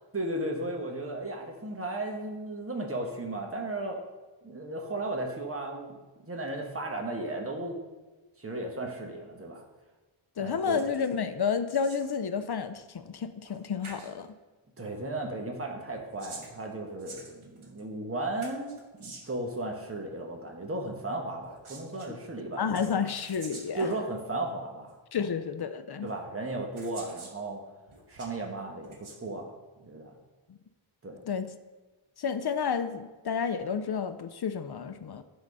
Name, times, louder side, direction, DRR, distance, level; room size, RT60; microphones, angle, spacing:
voice 1, 0.1-4.0 4.4-5.9 6.3-7.7 8.4-9.6 10.4-10.8 14.8-22.8 23.8-24.9 25.2-25.3 26.0-27.6 28.1-29.5 29.8-30.1 31.0-31.2, right 2 dB, 25° right, 1 dB, 1.3 m, -35 dB
voice 2, 10.4-14.3 22.1-22.2 22.6-23.9 25.1-26.1 31.3-31.5 32.2-35.2, left 6 dB, 50° left, 10 dB, 0.6 m, -31 dB
sound 1, 10.8-11.2 11.5-12.2 13.4-13.6 13.8-14.1 15.9-17.8 18.4-19.4 21.4-22.1 22.7-24.0 24.9-25.0 26.1-26.2 26.8-27.4 27.9-28.4 28.8-29.2, right 3 dB, 75° right, 1.4 m, -48 dB
11.5 x 4.0 x 5.4 m, 1.2 s
wide cardioid pair, 100°, 50 cm